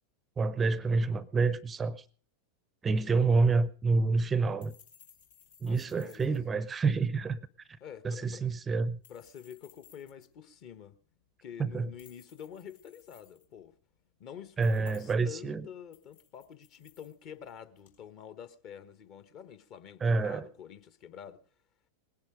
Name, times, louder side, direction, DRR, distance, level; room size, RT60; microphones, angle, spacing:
voice 1, 0.4-2.0 2.8-4.7 5.6-7.4 8.0-9.0 11.6-11.9 14.6-15.7 20.0-20.5, right 4 dB, 15° right, 0.6 m, -28 dB
sound 1, 2.9-18.0, left 8 dB, 65° left, 3.2 m, -63 dB
voice 2, 5.6-6.2 7.8-8.4 9.1-10.9 11.4-13.7 14.2-21.4, left 8 dB, 40° left, 1.3 m, -48 dB
20.0 x 10.5 x 5.0 m
figure-of-eight pair, 90°, 0 cm